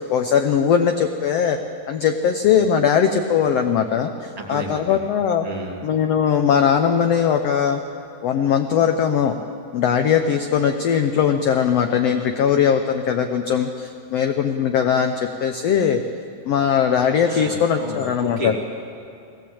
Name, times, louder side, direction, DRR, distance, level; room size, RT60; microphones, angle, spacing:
voice 1, 0.0-1.6 1.9-5.5 5.8-7.8 8.2-9.3 9.7-16.0 16.5-18.5, left 7 dB, 85° left, 6 dB, 1.4 m, -20 dB
voice 2, 4.3-5.0 5.4-5.8 16.9-18.7, equal, 15° right, -1 dB, 1.8 m, -32 dB
20.0 x 17.0 x 8.6 m, 2.5 s
omnidirectional pair, 4.0 m